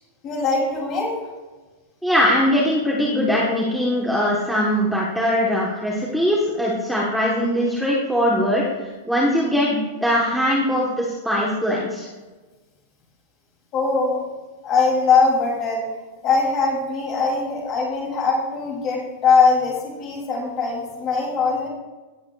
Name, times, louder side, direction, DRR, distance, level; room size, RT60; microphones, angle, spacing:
voice 1, 0.2-1.1 13.7-14.3 14.6-15.8 16.2-21.7, left 4 dB, 25° left, -1 dB, 2.8 m, -21 dB
voice 2, 2.0-12.1, equal, ahead, -4 dB, 1.1 m, -21 dB
17.0 x 8.1 x 2.3 m, 1.3 s
supercardioid pair, 165°, 0 cm